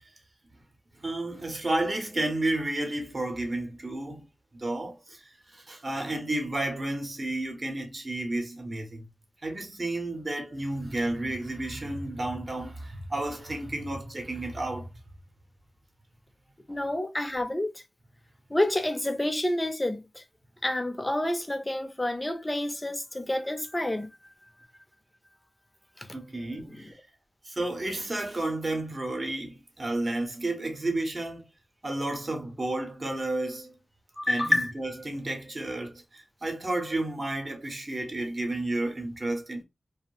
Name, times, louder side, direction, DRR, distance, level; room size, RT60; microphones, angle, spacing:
voice 1, 1.0-4.2 4.5-5.2 5.5-9.1 9.4-14.9 26.1-26.9 27.4-31.5 31.8-33.7 34.3-39.6, right 2 dB, 40° right, 0.8 m, -31 dB
voice 2, 16.7-17.7 18.5-20.2 20.6-24.1 26.0-26.1 26.6-26.8 34.2-34.7, left 1 dB, 15° left, 0.5 m, -28 dB
2.6 x 2.0 x 3.0 m
wide cardioid pair, 90°, 0 cm